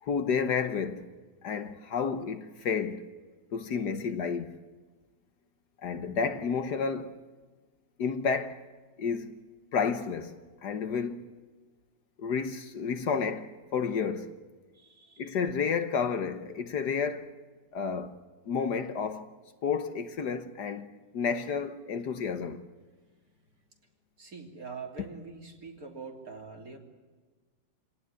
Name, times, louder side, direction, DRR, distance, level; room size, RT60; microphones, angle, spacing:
voice 1, 0.0-1.1 1.4-3.0 3.5-4.5 5.8-7.1 8.0-8.6 9.0-9.3 9.7-10.4 10.6-11.2 12.2-14.3 15.2-17.3 17.7-18.1 18.4-19.3 19.6-20.9 21.1-22.6, left 6 dB, 60° left, 1.6 m, -31 dB
voice 2, 14.7-15.4 24.2-26.8, right 4 dB, 50° right, 3.6 m, -44 dB
26.5 x 18.0 x 9.6 m
omnidirectional pair, 2.0 m